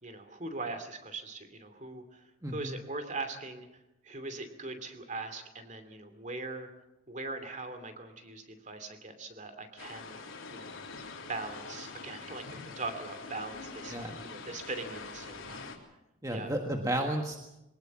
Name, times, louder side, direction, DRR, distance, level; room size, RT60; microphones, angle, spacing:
voice 1, 0.0-3.7 4.0-6.7 7.1-10.2 10.5-10.7 11.1-15.7 16.3-16.5, right 3 dB, 35° right, 9 dB, 2.7 m, -41 dB
sound 1, 9.8-15.8, left 4 dB, 80° left, 3.5 m, -44 dB
voice 2, 16.2-17.4, right 1 dB, 15° right, 2 dB, 1.6 m, -32 dB
23.0 x 19.0 x 7.4 m, 0.93 s
head